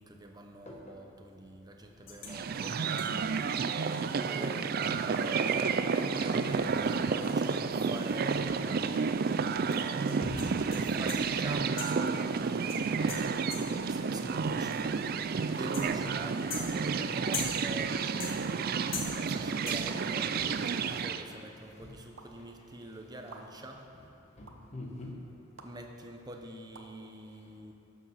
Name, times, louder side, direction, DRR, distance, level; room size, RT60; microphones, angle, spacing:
voice 1, 0.0-3.0 4.3-4.8 5.1-9.1 10.6-14.9 15.4-18.7 19.1-23.9 25.6-27.7, right 1 dB, 20° right, 3 dB, 0.8 m, -45 dB
Airshaft Metal Misc Hits Rustle Clanks Scrape Great Hall, 2.1-2.4 3.0-3.3 3.9-4.0 4.4-4.5 4.8-8.6 8.8-8.9 9.7-11.4 11.8-12.2 12.7-13.9 14.7-15.1 15.7-16.2 16.5-17.8 18.2-18.7 18.9-19.4 19.7-20.0, left 4 dB, 65° left, 1.7 m, -43 dB
sound 1, 2.3-21.2, right 5 dB, 45° right, 0.4 m, -31 dB
voice 2, 10.2-11.1 18.5-18.6 20.4-20.5 21.8-21.9 24.4-25.1, left 1 dB, 35° left, 0 dB, 1.4 m, -42 dB
sound 2, 19.9-20.0 21.0-21.1 22.2-22.3 23.3-23.4 24.4-24.5 25.6-25.7 26.7-26.9, right 4 dB, 65° right, 0.9 m, -48 dB
12.5 x 7.3 x 5.8 m, 2.7 s
head